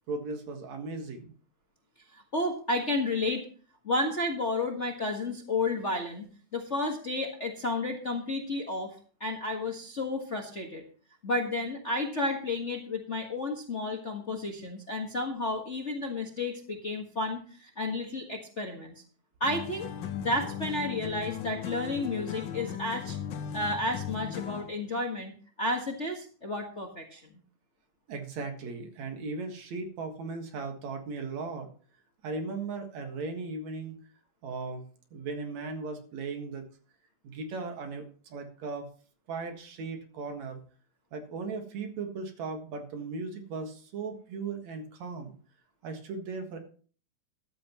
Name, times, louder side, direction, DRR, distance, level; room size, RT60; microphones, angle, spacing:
voice 1, 0.1-1.3 28.1-31.7 32.2-34.0 34.4-34.8 35.1-36.7 37.2-38.9 39.3-40.6 41.1-45.3 45.8-46.6, right 4 dB, 65° right, 4 dB, 2.9 m, -37 dB
voice 2, 2.1-3.4 3.8-6.2 6.5-8.9 9.2-10.8 11.2-19.0 19.4-19.9 20.1-23.2 23.5-25.3 25.6-27.2, left 2 dB, 35° left, 1 dB, 1.2 m, -32 dB
sound 1, 19.4-24.8, left 9 dB, 80° left, 1.0 m, -37 dB
14.0 x 12.5 x 3.0 m, 0.42 s
omnidirectional pair, 3.4 m